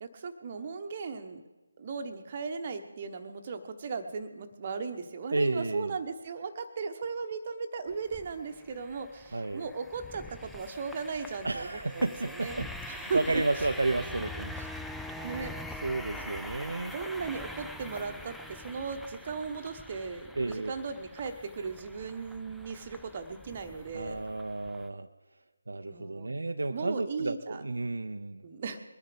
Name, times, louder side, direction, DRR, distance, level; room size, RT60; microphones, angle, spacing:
voice 1, 0.0-1.4 1.8-12.6 12.9-13.4 15.2-15.6 16.1-16.3 16.9-24.2 25.8-26.3 26.7-27.6 28.4-28.8, right 5 dB, 30° right, 7 dB, 1.0 m, -37 dB
voice 2, 5.3-6.0 9.3-9.7 11.4-14.7 15.1-15.5 15.8-16.9 20.4-20.7 23.9-25.1 25.7-28.4, right 2 dB, 60° right, 7 dB, 0.6 m, -32 dB
sound 1, 7.9-24.9, left 1 dB, ahead, 0.4 m, -44 dB
21.5 x 9.8 x 5.0 m, 1.1 s
figure-of-eight pair, 150°, 0 cm